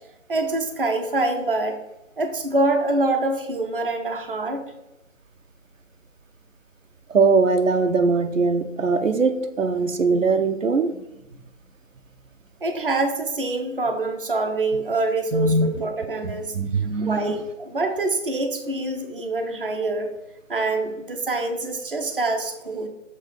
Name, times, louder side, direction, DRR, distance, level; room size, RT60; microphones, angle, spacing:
voice 1, 0.3-1.8 2.2-4.6 12.6-16.5 17.0-20.1 20.5-22.9, right 2 dB, 45° right, 4 dB, 0.7 m, -25 dB
voice 2, 7.1-10.9 15.3-15.8 16.2-17.4, right 4 dB, 80° right, 7 dB, 0.8 m, -21 dB
6.6 x 3.1 x 5.2 m, 0.89 s
figure-of-eight pair, 175°, 38 cm